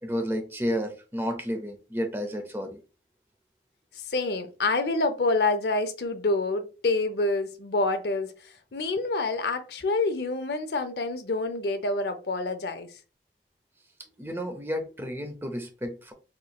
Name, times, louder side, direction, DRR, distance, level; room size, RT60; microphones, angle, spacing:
voice 1, 0.0-2.8 14.2-16.1, equal, 15° right, 0.6 m, -31 dB
voice 2, 4.1-8.3 8.7-12.9, left 3 dB, 65° left, 0.6 m, -27 dB
4.3 x 3.1 x 2.3 m
head